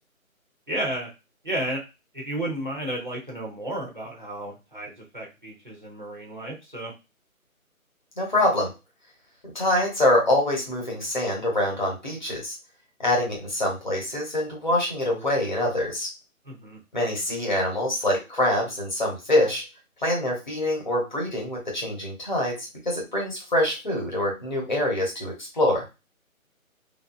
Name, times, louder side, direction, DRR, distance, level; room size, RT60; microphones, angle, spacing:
voice 1, 0.7-1.1 1.4-1.8 2.1-6.9 16.5-16.8, right 1 dB, 35° right, -3 dB, 0.6 m, -32 dB
voice 2, 8.2-8.7 9.5-12.6 13.0-16.1 16.9-19.6 20.0-25.8, left 1 dB, 35° left, -1 dB, 1.1 m, -25 dB
3.4 x 2.6 x 2.3 m, 0.26 s
figure-of-eight pair, 175°, 42 cm